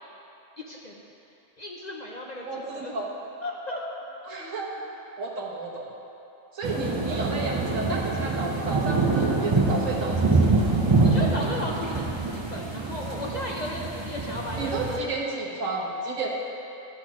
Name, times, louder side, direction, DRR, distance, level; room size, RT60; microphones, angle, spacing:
voice 1, 0.6-1.0 1.6-3.0 3.4-3.8 11.0-15.0, left 1 dB, 40° left, -2 dB, 0.7 m, -35 dB
voice 2, 2.4-3.1 4.2-4.8 5.2-5.9 6.5-10.9 14.6-16.3, right 3 dB, 75° right, -3 dB, 1.6 m, -31 dB
sound 1, 6.6-15.0, right 3 dB, 30° right, 0.6 m, -25 dB
12.0 x 4.3 x 6.0 m, 2.9 s
omnidirectional pair, 1.3 m